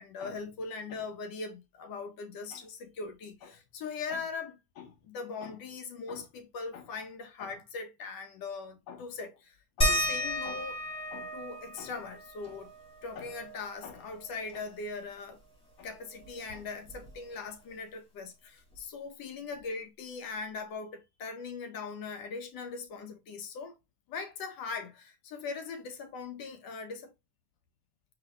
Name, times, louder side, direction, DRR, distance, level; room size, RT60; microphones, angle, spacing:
voice 1, 0.0-10.8 11.1-12.7 13.0-15.4 15.8-23.7 24.1-27.1, left 4 dB, 45° left, 1.3 m, -40 dB
sound 1, 9.8-14.9 15.3-15.4 15.7-17.5 18.7-18.8 19.6-19.7, equal, 10° left, 1.7 m, -35 dB
4.6 x 3.4 x 3.2 m
supercardioid pair, 130°, 47 cm